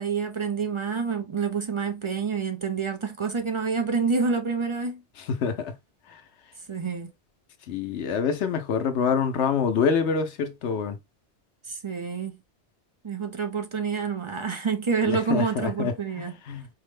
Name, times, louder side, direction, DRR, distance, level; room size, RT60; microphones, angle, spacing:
voice 1, 0.0-5.0 6.7-7.1 11.7-12.4 13.0-16.3, right 5 dB, 40° right, 0.4 m, -28 dB
voice 2, 5.3-5.7 7.7-11.0 15.1-16.6, left 6 dB, 85° left, 1.0 m, -26 dB
4.6 x 2.1 x 3.2 m
omnidirectional pair, 1.1 m